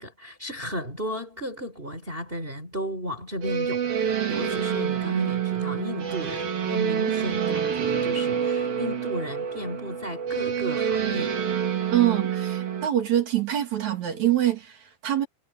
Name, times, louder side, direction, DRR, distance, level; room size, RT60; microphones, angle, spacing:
voice 1, 0.0-11.4, equal, 15° right, 4.7 m, -34 dB
sound 1, 3.4-12.9, right 8 dB, 70° right, 5.5 m, -27 dB
voice 2, 11.9-15.3, right 12 dB, 55° right, 3.5 m, -24 dB
omnidirectional pair, 4.2 m